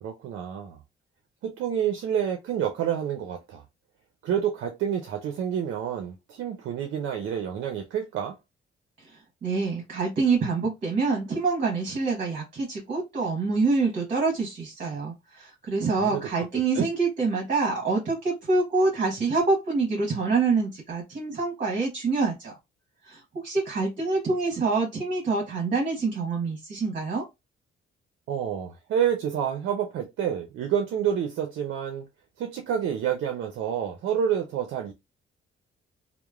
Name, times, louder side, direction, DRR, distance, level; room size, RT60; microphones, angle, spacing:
voice 1, 0.0-0.8 1.4-3.6 4.2-8.3 16.0-16.2 16.7-16.9 28.3-32.0 32.4-34.9, right 9 dB, 75° right, 0.5 m, -28 dB
voice 2, 9.4-22.5 23.1-27.2, right 4 dB, 45° right, 1.1 m, -26 dB
2.9 x 2.0 x 2.3 m
cardioid pair, 90°, 20 cm